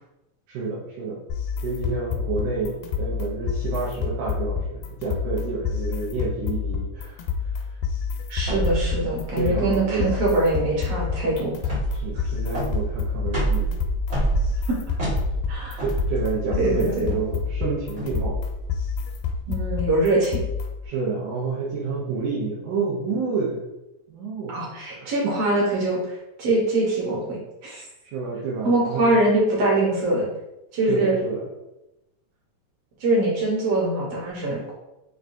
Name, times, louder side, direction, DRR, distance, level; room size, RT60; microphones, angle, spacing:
voice 1, 0.5-1.2 1.6-7.6 9.4-10.2 11.9-13.7 15.8-18.4 20.8-23.6 24.1-24.5 24.9-25.4 28.0-29.1 30.9-31.4, right 4 dB, 85° right, -6 dB, 2.2 m, -29 dB
sound 1, 1.3-20.9, left 6 dB, 85° left, 2.0 m, -29 dB
voice 2, 8.3-11.5 14.7-14.8 15.5-15.8 16.6-17.1 19.5-20.4 24.5-27.8 28.6-30.3 30.7-31.2 33.0-34.7, right 2 dB, 65° right, -4 dB, 1.7 m, -23 dB
sound 2, 8.4-19.6, right 3 dB, 50° right, 0.7 m, -29 dB
5.4 x 2.3 x 2.5 m, 0.93 s
omnidirectional pair, 3.5 m